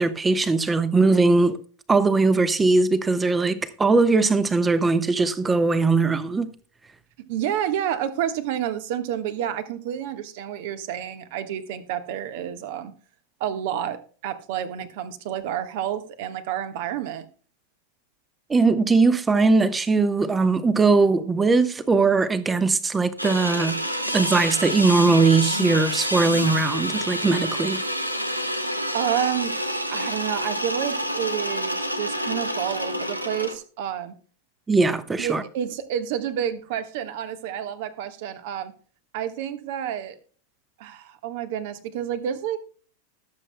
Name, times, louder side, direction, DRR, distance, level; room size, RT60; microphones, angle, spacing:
voice 1, 0.0-1.6 1.9-6.5 18.5-23.8 24.1-27.8 34.7-35.4, right 3 dB, 15° right, 1.0 m, -20 dB
voice 2, 7.3-12.9 13.4-17.2 28.9-29.5 29.9-34.2 35.2-38.7 39.1-40.2 40.8-42.6, right 10 dB, 50° right, 1.4 m, -29 dB
sound 1, 23.2-33.5, equal, 85° right, 1.3 m, -28 dB
20.0 x 7.8 x 2.2 m
figure-of-eight pair, 90°, 0 cm